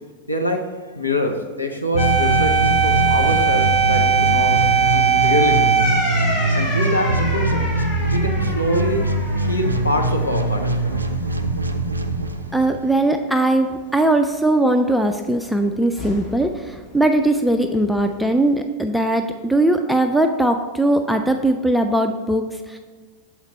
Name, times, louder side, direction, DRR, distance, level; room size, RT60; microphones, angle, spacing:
voice 1, 0.3-4.6 4.9-5.7 6.5-7.7 8.1-10.9, left 1 dB, 85° left, 2 dB, 0.8 m, -25 dB
sound 1, 1.9-12.9, right 2 dB, 80° right, 0.4 m, -22 dB
sound 2, 2.0-10.6 11.0-11.1 16.0-16.5, right 5 dB, 40° left, 1.6 m, -21 dB
voice 2, 12.5-22.8, right 1 dB, ahead, 5 dB, 0.3 m, -19 dB
7.3 x 4.3 x 4.2 m, 1.4 s
figure-of-eight pair, 90°, 0 cm